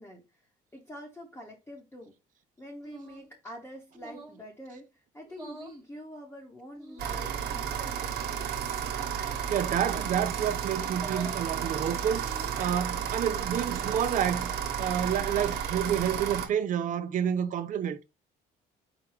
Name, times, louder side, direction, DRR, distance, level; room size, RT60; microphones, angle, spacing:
voice 1, 0.0-2.2 2.6-8.7, equal, 10° left, 1.1 m, -46 dB
sound 1, 2.8-3.3 3.9-4.4 5.3-5.8 6.8-7.3 8.1-8.5 9.8-10.3 10.9-11.4 12.1-12.7, right 1 dB, 20° right, 1.3 m, -47 dB
sound 2, 7.0-16.5, right 8 dB, 75° right, 1.0 m, -32 dB
voice 2, 9.5-18.0, right 9 dB, 50° right, 0.6 m, -29 dB
4.8 x 2.3 x 4.8 m
cardioid pair, 110°, 17 cm